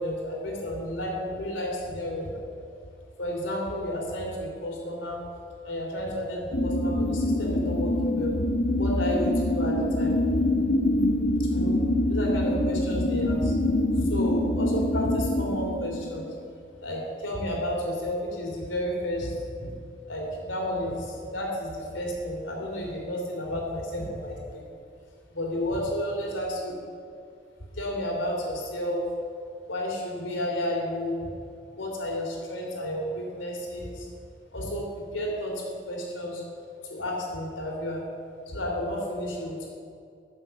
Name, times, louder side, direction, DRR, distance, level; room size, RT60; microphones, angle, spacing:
voice 1, 0.0-2.4 3.2-5.2 5.6-8.3 8.8-10.2 11.4-11.8 12.1-13.5 13.9-16.3 16.8-19.7 20.1-24.6 25.3-26.5 27.7-29.1 29.7-31.3 31.7-34.1 34.5-36.4 36.8-38.0 38.5-39.7, left 1 dB, 80° left, -1 dB, 3.3 m, -31 dB
sound 1, 6.5-16.4, left 1 dB, 65° left, 1.2 m, -25 dB
14.0 x 7.6 x 7.0 m, 2.5 s
head